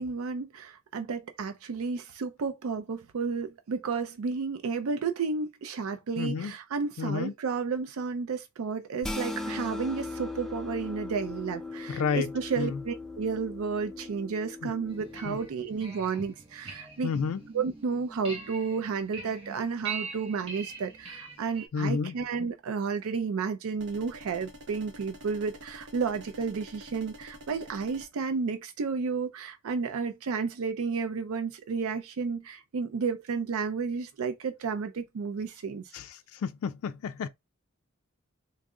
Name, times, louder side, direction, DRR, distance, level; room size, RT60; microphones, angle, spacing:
voice 1, 0.0-17.1 17.5-35.9, right 5 dB, 90° right, 0.4 m, -32 dB
voice 2, 6.2-6.5 7.0-7.3 11.9-12.3 12.6-12.8 14.6-14.7 15.3-15.4 17.0-17.4 21.7-22.1 35.9-37.3, left 6 dB, 80° left, 0.3 m, -30 dB
sound 1, 9.0-15.5, left 3 dB, ahead, 0.4 m, -38 dB
sound 2, 14.9-21.7, right 5 dB, 25° right, 0.8 m, -42 dB
sound 3, 23.8-28.1, equal, 55° right, 0.8 m, -48 dB
3.6 x 2.0 x 3.5 m
head